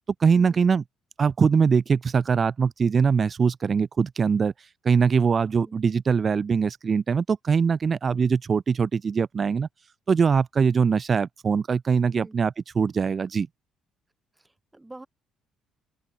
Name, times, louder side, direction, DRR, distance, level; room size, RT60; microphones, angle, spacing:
voice 1, 0.2-0.8 1.2-4.5 4.8-9.7 10.1-13.5, right 6 dB, 40° right, 0.4 m, -22 dB
voice 2, 12.1-12.4 14.3-15.1, right 2 dB, 15° right, 3.4 m, -47 dB
open air
supercardioid pair, 80°, 0 cm